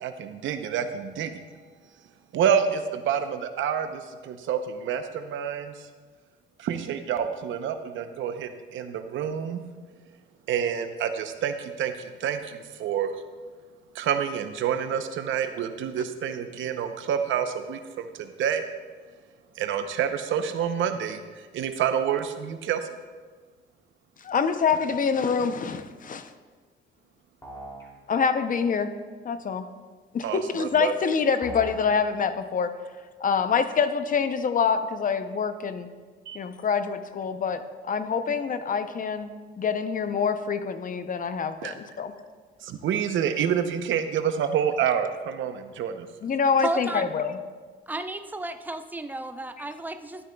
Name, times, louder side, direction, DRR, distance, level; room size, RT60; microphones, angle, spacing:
voice 1, 0.0-1.4 2.3-5.7 6.6-9.6 10.5-13.1 13.9-18.7 19.6-21.2 21.5-22.8 30.2-30.9 36.3-36.4 41.6-41.7 42.6-46.1, right 8 dB, 75° right, 8 dB, 0.7 m, -28 dB
voice 2, 24.2-26.3 28.1-28.9 29.2-29.7 30.1-32.7 33.2-35.9 36.3-39.3 39.6-42.1 46.2-47.4, left 6 dB, 45° left, 10 dB, 0.6 m, -26 dB
sound 1, 27.4-27.9 31.4-31.9, equal, 15° left, 2.8 m, -39 dB
voice 3, 46.6-47.1 47.9-50.3, right 2 dB, 10° right, 8 dB, 0.5 m, -33 dB
12.0 x 9.2 x 2.3 m, 1.5 s
cardioid pair, 90°, 20 cm